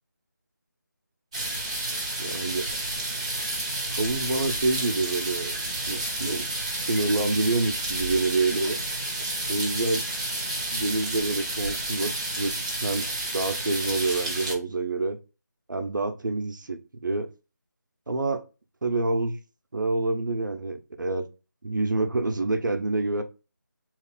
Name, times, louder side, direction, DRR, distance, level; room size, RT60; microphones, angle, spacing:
sound 1, 1.3-14.5, right 2 dB, 15° right, 0.7 m, -31 dB
voice 1, 2.2-2.6 3.9-5.6 5.9-6.5 6.7-8.8 9.5-10.0 10.7-15.2 15.7-17.3 18.1-18.4 18.8-19.4 19.7-21.3 21.6-23.2, right 2 dB, 80° right, 0.7 m, -27 dB
3.1 x 2.4 x 3.6 m
figure-of-eight pair, 170°, 10 cm